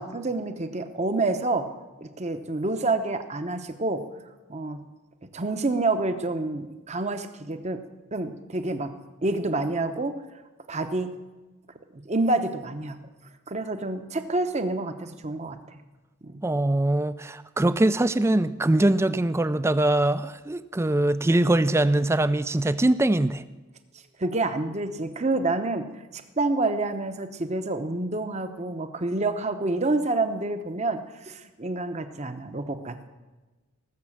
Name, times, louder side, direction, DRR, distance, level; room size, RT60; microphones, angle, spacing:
voice 1, 0.0-1.7 2.0-4.0 4.5-4.8 5.3-7.8 8.1-8.9 9.2-10.1 10.7-11.1 11.9-13.0 13.5-15.8 16.2-16.4 24.2-25.9 26.1-33.1, right 2 dB, 30° right, 8 dB, 0.9 m, -28 dB
voice 2, 16.4-23.4, right 1 dB, 10° right, 14 dB, 0.3 m, -22 dB
18.0 x 7.4 x 7.3 m, 1.2 s
head